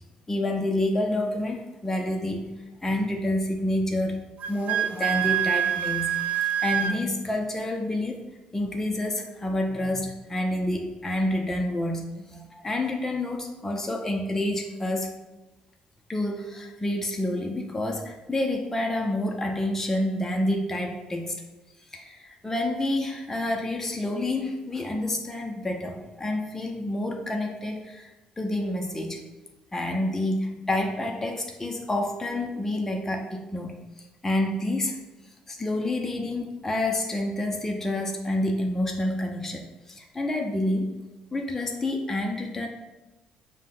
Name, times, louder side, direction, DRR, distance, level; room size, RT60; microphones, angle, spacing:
voice 1, 0.3-2.5 2.8-6.1 6.4-8.2 8.5-15.1 16.1-21.4 21.9-28.1 28.4-29.2 29.7-33.7 34.2-35.0 35.5-39.6 39.9-42.7, left 1 dB, 15° left, 2 dB, 0.5 m, -28 dB
Wind instrument woodwind instrument, 4.4-7.0, right 10 dB, 65° right, 0.3 m, -25 dB
5.5 x 2.1 x 3.8 m, 1.1 s
cardioid pair, 90°, 3 cm